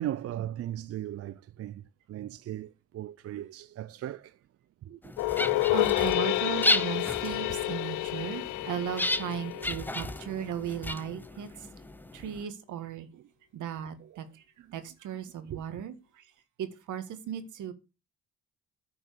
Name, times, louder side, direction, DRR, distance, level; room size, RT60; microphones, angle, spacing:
voice 1, 0.0-4.4 4.8-5.1 8.7-8.8 9.6-9.7 10.4-10.6 13.1-13.3 14.0-14.3 14.6-14.8 15.4-15.6, right 12 dB, 50° right, 0.5 m, -38 dB
sound 1, 5.0-12.4, left 1 dB, 5° left, 0.6 m, -34 dB
sound 2, 5.2-10.4, left 17 dB, 85° left, 0.5 m, -29 dB
voice 2, 5.7-11.5 12.1-13.1 13.5-14.4 14.7-16.2 16.6-17.7, right 9 dB, 80° right, 1.6 m, -36 dB
9.8 x 4.7 x 6.7 m
cardioid pair, 90°, 30 cm